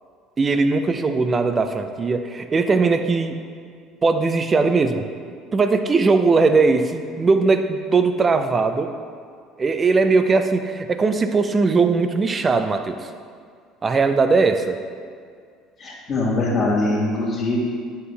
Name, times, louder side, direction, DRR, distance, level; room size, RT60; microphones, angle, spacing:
voice 1, 0.4-3.4 4.0-5.1 5.5-8.9 9.6-13.1 13.8-14.8, right 4 dB, 30° right, 8 dB, 0.6 m, -19 dB
voice 2, 15.8-17.6, left 2 dB, 45° left, -6 dB, 2.0 m, -22 dB
11.0 x 5.7 x 3.4 m, 2.1 s
figure-of-eight pair, 60°, 0 cm